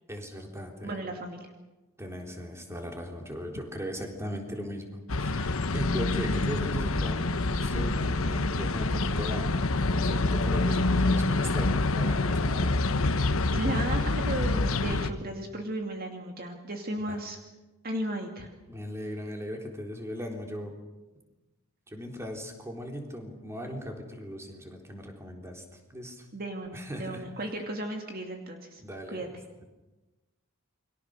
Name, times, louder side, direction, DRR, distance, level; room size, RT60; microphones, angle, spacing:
voice 1, 0.1-1.0 2.0-7.2 7.5-12.8 14.9-15.0 17.1-17.2 18.7-20.7 21.9-26.3 26.7-27.2 28.8-29.3, equal, 15° right, 2 dB, 3.8 m, -38 dB
voice 2, 0.8-1.5 7.8-8.0 13.0-17.4 17.8-18.5 26.3-28.8 29.1-29.3, right 1 dB, 45° right, 3 dB, 2.5 m, -35 dB
sound 1, 5.1-15.1, left 2 dB, 75° left, 1.2 m, -26 dB
29.0 x 23.0 x 6.7 m, 1.1 s
head